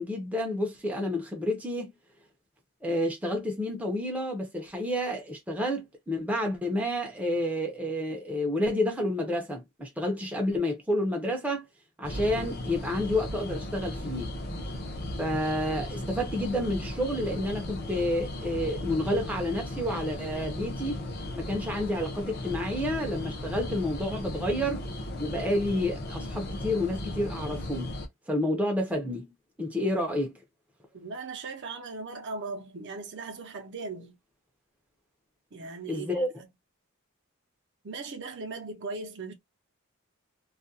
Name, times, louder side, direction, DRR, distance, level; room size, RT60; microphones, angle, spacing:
voice 1, 0.0-1.9 2.8-11.7 12.0-14.3 15.2-21.0 21.4-24.9 25.2-27.9 28.3-29.3 29.6-30.3 35.9-36.3, left 1 dB, 5° right, 0.5 m, -29 dB
sound 1, 12.0-28.1, left 1 dB, 45° left, 0.6 m, -36 dB
voice 2, 30.9-34.2 35.5-36.3 37.8-39.3, right 3 dB, 55° right, 0.6 m, -38 dB
2.3 x 2.1 x 2.5 m
head